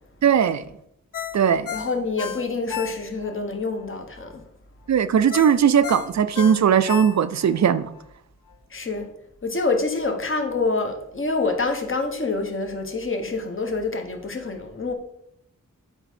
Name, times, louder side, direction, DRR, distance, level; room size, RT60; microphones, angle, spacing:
voice 1, 0.2-0.6 1.3-1.7 4.9-7.9, right 8 dB, 60° right, 0.5 m, -19 dB
Ringtone, 1.1-3.4 3.8-3.9 5.3-7.6 8.0-8.1, left 9 dB, 80° left, 0.6 m, -33 dB
voice 2, 1.7-4.4 8.7-9.1 9.4-14.9, left 3 dB, 40° left, 1.2 m, -26 dB
8.0 x 3.6 x 6.0 m
wide cardioid pair, 125°, 32 cm